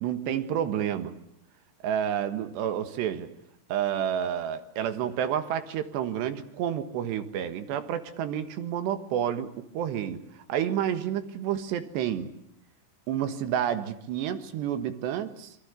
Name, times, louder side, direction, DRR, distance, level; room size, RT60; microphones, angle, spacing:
voice 1, 0.0-1.2 1.8-3.3 3.7-12.3 13.1-15.6, right 9 dB, 85° right, 3.7 m, -30 dB
27.5 x 24.0 x 8.3 m
omnidirectional pair, 4.8 m